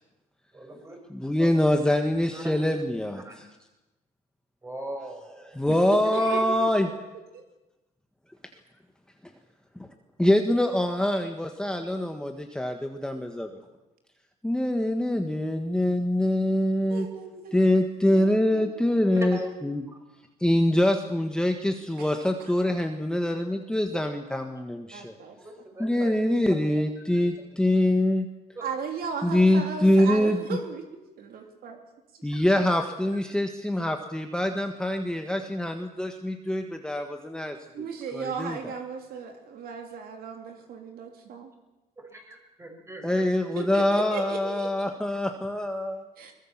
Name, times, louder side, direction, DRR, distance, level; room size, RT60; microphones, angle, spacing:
voice 1, 0.5-1.0 1.4-1.5 2.3-2.5 3.2-3.4 4.6-5.6 6.2-6.4 11.1-11.2 11.6-11.7 19.1-19.5 19.9-20.0 25.4-26.2 26.5-26.6 27.0-27.3 28.5-28.7 32.3-32.4 33.1-33.2 42.0-43.3, right 1 dB, 15° right, 3 dB, 6.4 m, -39 dB
voice 2, 1.1-3.5 5.5-6.9 10.2-13.5 14.4-17.1 17.5-19.8 20.4-25.1 25.8-28.3 29.2-30.4 32.2-37.8 38.1-38.6 43.0-46.0, left 1 dB, 5° left, 4 dB, 1.6 m, -24 dB
voice 3, 5.6-6.7 7.3-7.4 16.9-17.7 18.1-18.8 22.0-22.5 24.9-25.4 28.6-30.8 31.2-31.8 37.7-41.5 43.5-44.7 46.2-46.3, right 5 dB, 60° right, 4 dB, 3.2 m, -36 dB
22.5 x 21.0 x 7.5 m, 1.0 s
cardioid pair, 110°, 17 cm